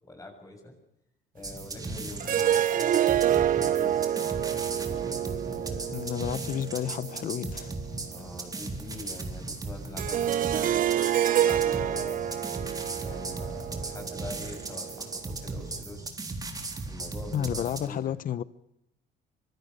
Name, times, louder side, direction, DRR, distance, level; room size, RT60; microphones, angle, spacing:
voice 1, 0.0-0.8 1.3-4.1 4.9-6.0 8.1-12.6 13.0-16.1 16.8-18.2, left 1 dB, 20° left, 7.5 m, -44 dB
sound 1, 1.4-17.9, right 3 dB, 20° right, 3.8 m, -37 dB
sound 2, 2.2-8.1 10.0-15.2, right 11 dB, 55° right, 0.9 m, -28 dB
voice 2, 5.9-7.7 17.3-18.4, left 10 dB, 55° left, 1.1 m, -31 dB
25.5 x 23.5 x 6.7 m
cardioid pair, 110°, 17 cm